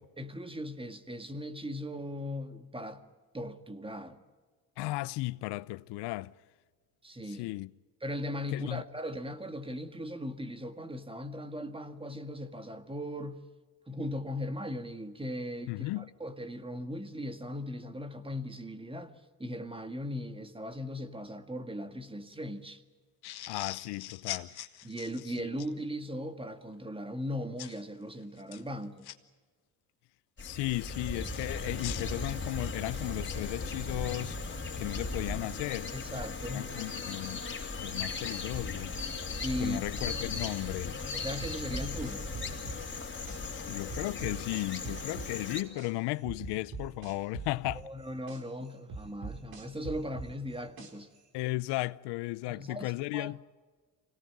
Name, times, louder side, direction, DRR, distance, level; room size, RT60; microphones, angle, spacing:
voice 1, 0.2-3.0 3.3-4.2 7.0-7.5 8.0-13.4 13.9-22.8 24.8-29.1 35.9-36.7 39.4-39.8 41.1-42.3 47.8-51.1 52.5-53.4, equal, 15° right, 1.8 m, -38 dB
voice 2, 4.8-6.3 7.4-7.7 8.5-8.8 15.7-16.1 23.5-24.5 25.4-25.5 30.4-34.4 34.8-35.9 36.5-37.4 37.8-38.9 39.6-41.0 43.7-47.9 51.3-53.4, left 20 dB, 90° left, 0.6 m, -35 dB
sound 1, 23.2-25.7 27.6-27.8 28.4-29.1 31.3-33.2, left 13 dB, 70° left, 1.4 m, -42 dB
sound 2, 30.4-45.6, left 3 dB, 30° left, 3.4 m, -37 dB
sound 3, 41.4-43.4 43.9-45.9 46.2-48.4 48.9-51.2, right 4 dB, 65° right, 4.5 m, -41 dB
25.0 x 18.0 x 9.3 m
cardioid pair, 90°, 39 cm